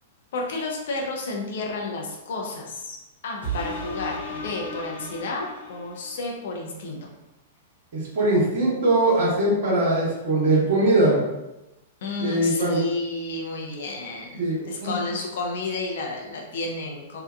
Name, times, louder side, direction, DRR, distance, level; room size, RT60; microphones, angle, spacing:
voice 1, 0.3-3.0 3.2-7.1 12.0-17.2, left 2 dB, 65° left, 0 dB, 0.5 m, -31 dB
sound 1, 3.4-6.3 6.9-7.0, right 1 dB, 90° left, 1.1 m, -35 dB
voice 2, 7.9-11.2 12.2-12.8 14.4-14.9, right 2 dB, 60° right, -5 dB, 0.9 m, -21 dB
2.7 x 2.2 x 2.2 m, 0.98 s
hypercardioid pair, 105°, 0 cm